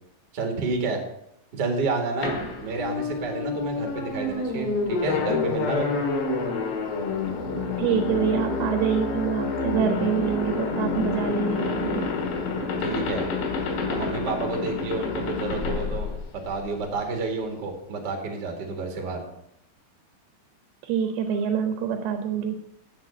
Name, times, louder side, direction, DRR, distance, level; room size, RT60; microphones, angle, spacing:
voice 1, 0.3-1.0 1.5-6.0 12.8-13.3 13.9-16.1 16.4-19.2, right 3 dB, 40° right, 2 dB, 1.6 m, -30 dB
sound 1, 2.2-16.8, left 4 dB, 80° left, 3.6 m, -28 dB
voice 2, 7.8-12.0 20.8-22.6, right 7 dB, 75° right, 6 dB, 2.7 m, -26 dB
8.5 x 7.5 x 7.1 m, 0.78 s
omnidirectional pair, 4.8 m